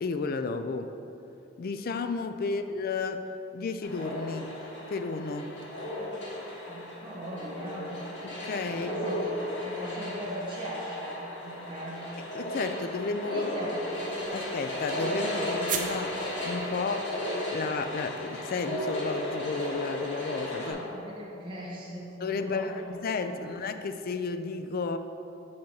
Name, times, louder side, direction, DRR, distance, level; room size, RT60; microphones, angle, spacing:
voice 1, 0.0-0.9 1.6-3.3 3.5-4.6 4.9-5.7 8.2-8.9 12.3-13.5 14.3-17.1 17.5-20.8 22.2-25.0, left 4 dB, 50° left, 9 dB, 0.4 m, -32 dB
sound 1, 3.8-20.7, left 1 dB, 65° left, 1.8 m, -35 dB
voice 2, 6.7-8.0 8.6-9.3 9.6-12.0 13.2-13.9 20.6-22.9 23.2-23.5, equal, 25° right, -5 dB, 1.4 m, -39 dB
sound 2, 13.9-17.5, right 8 dB, 45° right, 0.6 m, -40 dB
7.1 x 5.8 x 4.7 m, 2.8 s
head